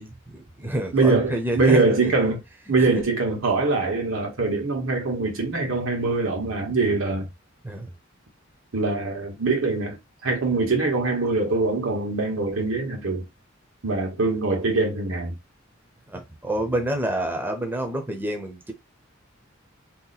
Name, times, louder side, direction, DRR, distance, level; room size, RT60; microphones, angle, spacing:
voice 1, 0.0-2.1 2.8-2.9 7.6-7.9 16.1-18.7, right 1 dB, 10° right, 0.6 m, -28 dB
voice 2, 0.9-2.4 2.7-7.3 8.7-10.0 10.2-13.3 13.8-15.4, right 3 dB, 90° right, 1.1 m, -23 dB
2.8 x 2.1 x 4.0 m
head